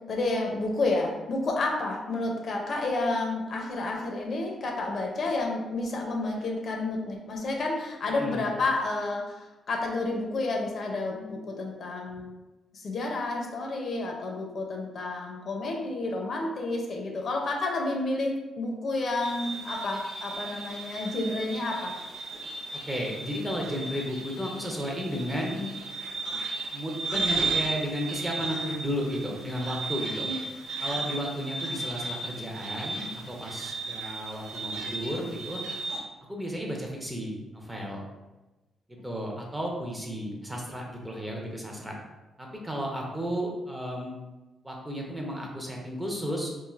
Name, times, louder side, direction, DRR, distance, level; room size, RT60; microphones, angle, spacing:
voice 1, 0.1-12.3 12.7-21.9 30.2-30.4, left 2 dB, 50° left, 1 dB, 0.5 m, -30 dB
sound 1, 19.2-36.0, right 3 dB, 85° right, 0.6 m, -35 dB
voice 2, 22.8-25.7 26.7-30.3 30.8-35.6 36.3-38.1 38.9-42.0 42.4-44.1 44.6-46.5, equal, 10° right, -1 dB, 0.5 m, -33 dB
3.1 x 2.4 x 2.4 m, 1.1 s
cardioid pair, 125°, 0 cm